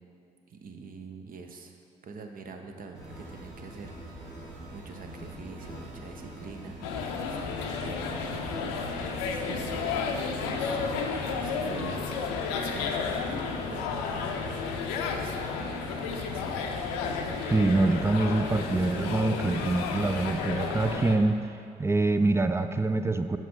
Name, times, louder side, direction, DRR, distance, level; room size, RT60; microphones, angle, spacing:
voice 1, 0.5-1.8 2.0-14.5 15.0-16.5, right 5 dB, 45° right, 5 dB, 0.8 m, -46 dB
sound 1, 2.9-21.0, right 1 dB, 75° right, 1.6 m, -44 dB
sound 2, 6.8-21.2, left 5 dB, 80° left, 0.5 m, -32 dB
voice 2, 17.5-21.4 21.8-23.4, right 2 dB, 15° right, 9 dB, 0.4 m, -25 dB
7.4 x 5.5 x 3.7 m, 2.4 s
hypercardioid pair, 45°, 19 cm